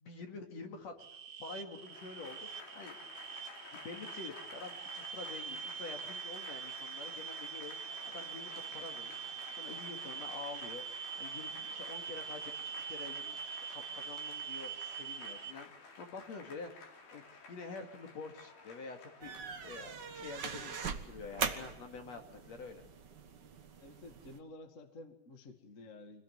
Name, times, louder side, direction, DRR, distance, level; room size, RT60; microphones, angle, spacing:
voice 1, 0.0-0.9 1.4-3.0 3.7-9.2 9.6-10.8 11.2-13.4 13.7-22.9, left 4 dB, 50° left, 4 dB, 3.0 m, -47 dB
sound 1, 1.0-15.5, right 7 dB, 50° right, 2.3 m, -44 dB
Applause / Crowd, 1.8-20.3, left 4 dB, 75° left, 5.4 m, -53 dB
sound 2, 19.2-24.4, right 6 dB, 85° right, 0.9 m, -41 dB
voice 2, 23.8-26.2, left 2 dB, 30° left, 5 dB, 1.7 m, -52 dB
25.5 x 18.0 x 9.2 m, 1.1 s
omnidirectional pair, 4.3 m